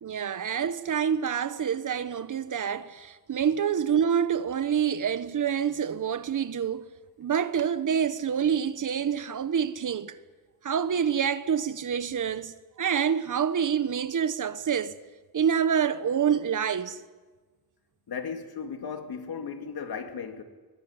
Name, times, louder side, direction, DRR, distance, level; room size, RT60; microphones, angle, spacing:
voice 1, 0.0-6.9 7.2-10.1 10.6-15.0 15.3-17.0, right 8 dB, 50° right, 1.0 m, -27 dB
voice 2, 18.1-20.4, left 6 dB, 70° left, 2.5 m, -36 dB
21.5 x 18.5 x 9.7 m
wide cardioid pair, 135°, 38 cm